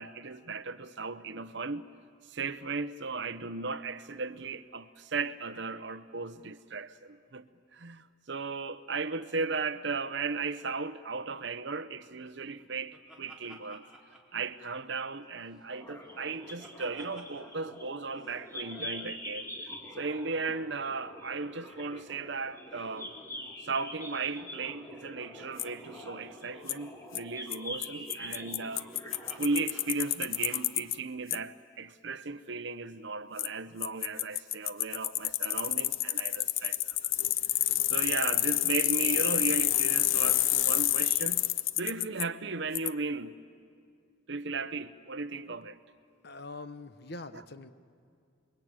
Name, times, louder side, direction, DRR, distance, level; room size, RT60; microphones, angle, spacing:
voice 1, 0.0-1.9 2.3-7.5 7.7-13.9 14.3-19.5 20.0-23.1 23.6-28.9 29.3-36.8 37.9-41.5 41.8-43.4 44.3-45.8 47.3-47.4, right 4 dB, 60° right, 0.9 m, -36 dB
Laughter, 12.2-15.2 15.5-17.6 17.9-18.0 18.1-18.4 19.6-22.0 22.3-22.4 22.7-23.0 24.1-26.9 27.9-30.7, right 2 dB, 5° right, 4.4 m, -56 dB
sound 1, 15.7-29.9, left 1 dB, 15° left, 2.6 m, -45 dB
Bicycle, 25.6-25.7 26.7-26.8 27.2-27.3 27.5-27.6 27.8-27.9 28.1-31.0 31.3-31.4 33.4-33.5 33.8-42.2 42.8-42.9, left 14 dB, 80° left, 0.7 m, -28 dB
voice 2, 46.2-47.7, left 2 dB, 55° left, 1.1 m, -43 dB
28.0 x 23.0 x 9.0 m
head